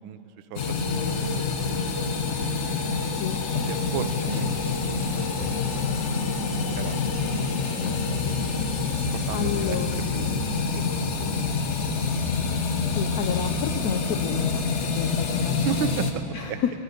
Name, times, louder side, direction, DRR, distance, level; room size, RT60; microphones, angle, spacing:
voice 1, 0.0-1.8 2.1-2.8 3.5-4.6 5.2-6.1 6.4-8.0 9.1-11.6 15.4-16.6, right 9 dB, 80° right, 12 dB, 1.4 m, -36 dB
sound 1, 0.6-16.1, left 4 dB, 50° left, 0.9 m, -27 dB
voice 2, 9.3-10.0 12.9-15.6 16.3-16.7, left 8 dB, 75° left, 6 dB, 0.8 m, -30 dB
16.5 x 10.5 x 6.7 m, 2.7 s
omnidirectional pair, 2.2 m